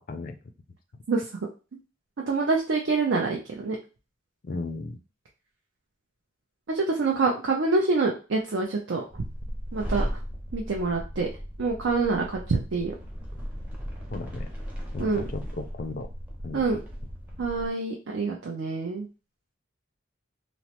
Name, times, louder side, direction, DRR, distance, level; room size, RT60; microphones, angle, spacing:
voice 1, 2.3-3.8 6.7-9.0 9.7-10.0 10.5-11.3 11.6-12.9 15.0-15.2 16.5-16.8 17.4-19.1, right 3 dB, 70° right, -1 dB, 0.5 m, -26 dB
voice 2, 4.4-5.0 14.1-14.5 14.9-16.1 16.4-16.6, left 3 dB, 45° left, 8 dB, 0.4 m, -35 dB
sound 1, 9.1-17.7, equal, 5° right, 0.5 m, -36 dB
3.0 x 2.0 x 2.8 m, 0.32 s
head